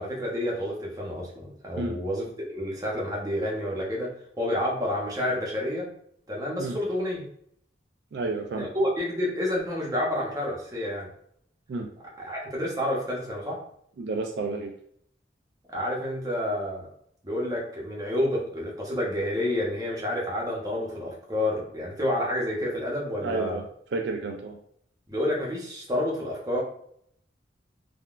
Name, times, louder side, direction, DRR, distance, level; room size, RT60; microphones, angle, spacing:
voice 1, 0.0-4.1 4.4-5.9 6.3-7.2 8.5-11.1 12.2-13.6 15.7-16.9 17.2-23.6 25.1-26.6, left 1 dB, 20° right, -3 dB, 0.7 m, -29 dB
voice 2, 8.1-8.7 11.7-11.9 14.0-14.7 23.2-23.6 23.9-24.6, right 3 dB, 65° right, 3 dB, 0.3 m, -31 dB
3.6 x 2.2 x 2.3 m, 0.68 s
head